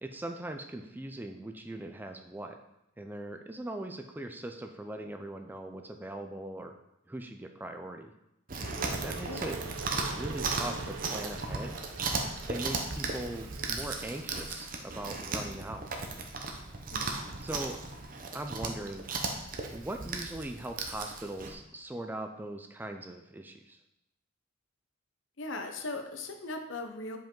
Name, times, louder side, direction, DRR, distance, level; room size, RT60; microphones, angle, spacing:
voice 1, 0.0-2.6 3.0-6.8 7.1-8.1 9.0-9.6 10.0-11.8 12.5-15.9 17.4-17.8 18.3-19.0 19.7-23.8, right 1 dB, 10° right, 5 dB, 0.4 m, -40 dB
Chewing mastication, 8.5-21.5, right 3 dB, 40° right, 0.8 m, -36 dB
Water / Boiling, 8.6-13.8, right 5 dB, 90° right, 0.5 m, -45 dB
voice 2, 25.4-27.2, left 2 dB, 70° left, 5 dB, 0.8 m, -39 dB
7.0 x 5.2 x 3.8 m, 0.86 s
head